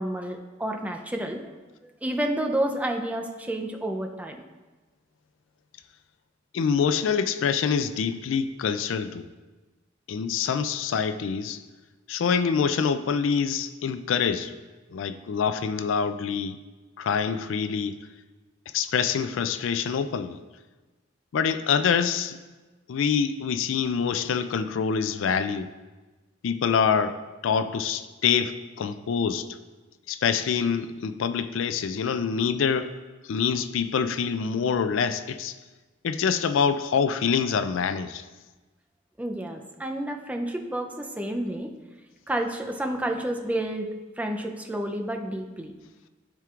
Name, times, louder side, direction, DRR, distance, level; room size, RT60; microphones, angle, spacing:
voice 1, 0.0-1.4 1.8-4.4 39.2-41.7 42.3-43.9 44.2-45.7, right 1 dB, 10° right, 3 dB, 0.5 m, -30 dB
voice 2, 6.5-9.3 10.1-11.6 12.1-14.5 14.9-16.6 17.0-18.0 18.7-20.4 21.3-22.4 22.9-25.7 26.4-29.5 30.1-32.9 33.3-35.5 36.0-38.2, left 6 dB, 80° left, 12 dB, 0.4 m, -25 dB
12.5 x 4.5 x 2.4 m, 1.2 s
head